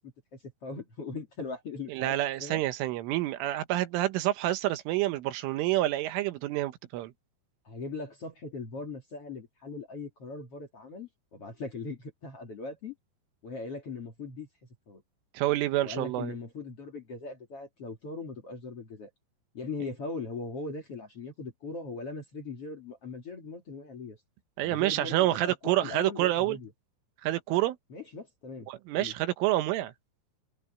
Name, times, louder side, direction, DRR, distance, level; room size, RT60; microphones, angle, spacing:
voice 1, 0.0-2.6 7.6-12.9 13.4-14.5 14.9-15.0 15.8-19.1 19.5-24.2 24.6-26.7 27.9-28.7 28.9-29.1, left 3 dB, 40° left, 2.5 m, -40 dB
voice 2, 1.9-7.1 15.4-16.4 24.6-26.6 27.2-27.8 28.7-29.9, right 15 dB, 80° right, 3.6 m, -28 dB
omnidirectional pair, 5.6 m